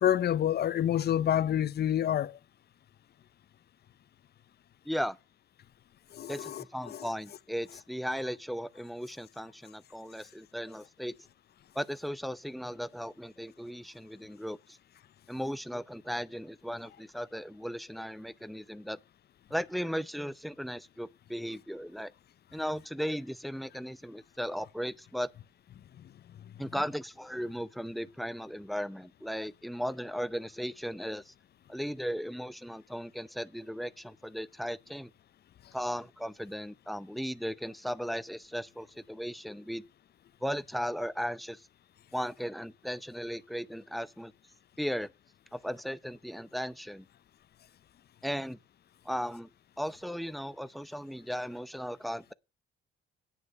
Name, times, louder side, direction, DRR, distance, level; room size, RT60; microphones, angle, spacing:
voice 1, 0.0-2.4 6.1-7.1, left 10 dB, 55° left, 0.6 m, -28 dB
voice 2, 4.8-5.2 6.3-11.1 11.7-14.8 15.3-19.0 19.5-22.1 22.5-25.3 26.6-31.3 31.7-35.1 35.7-39.8 40.4-41.7 42.1-44.3 44.8-45.1 45.5-47.1 48.2-48.6 49.0-49.5 49.8-52.3, equal, ahead, 0.7 m, -36 dB
9.5 x 9.1 x 6.7 m
cardioid pair, 90°, 20 cm